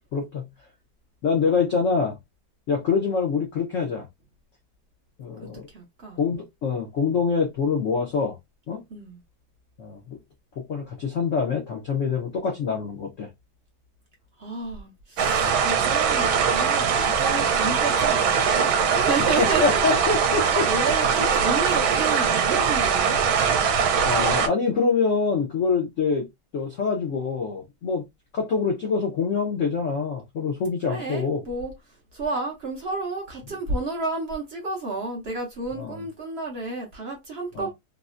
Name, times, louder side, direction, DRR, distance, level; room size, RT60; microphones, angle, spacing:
voice 1, 0.1-0.5 1.2-2.2 2.7-4.1 5.2-5.7 6.2-8.4 8.7-8.8 9.8-10.2 10.6-13.3 19.2-20.7 24.0-26.2 26.5-28.0 28.3-31.4 35.8-36.0 37.5-37.7, left 5 dB, 75° left, 0.7 m, -25 dB
voice 2, 5.7-6.2 8.9-9.2 14.4-20.0 20.7-23.2 30.9-31.7 32.1-37.7, right 3 dB, 65° right, 0.6 m, -31 dB
sound 1, 15.2-24.5, right 6 dB, 80° right, 1.4 m, -22 dB
3.7 x 2.1 x 2.4 m
omnidirectional pair, 2.2 m